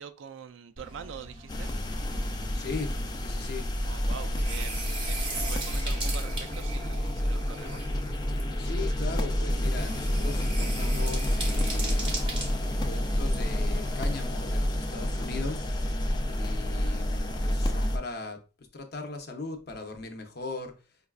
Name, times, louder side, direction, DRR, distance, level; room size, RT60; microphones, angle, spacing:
voice 1, 0.0-1.7 3.8-7.8, right 7 dB, 70° right, 0.4 m, -44 dB
sound 1, 0.8-14.3, right 2 dB, 25° right, 0.8 m, -40 dB
sound 2, 1.5-18.0, left 1 dB, 20° left, 0.3 m, -29 dB
voice 2, 2.5-3.7 4.4-4.5 8.6-12.3 12.8-15.7 16.2-20.7, left 3 dB, 50° left, 0.6 m, -39 dB
5.2 x 2.3 x 2.3 m
head